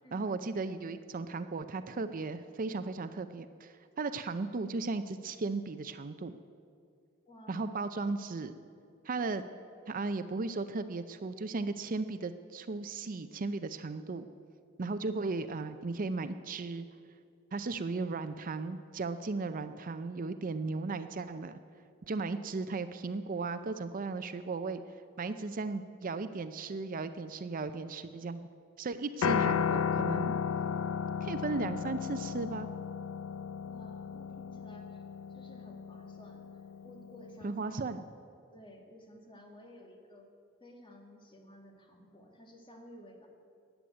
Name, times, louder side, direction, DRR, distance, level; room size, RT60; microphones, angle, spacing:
voice 1, 0.1-6.4 7.5-8.5 9.0-9.4 9.9-14.3 14.8-16.8 17.5-21.6 22.1-24.8 25.2-28.5 28.8-30.3 31.2-32.7 37.4-38.0, right 3 dB, 40° right, 10 dB, 0.5 m, -36 dB
voice 2, 7.3-7.8 33.6-35.0 35.3-37.8 38.5-40.3 40.6-43.3, equal, 25° left, 2 dB, 2.1 m, -54 dB
Piano, 29.2-37.5, left 7 dB, 70° left, 0.4 m, -34 dB
14.0 x 9.4 x 9.5 m, 2.4 s
head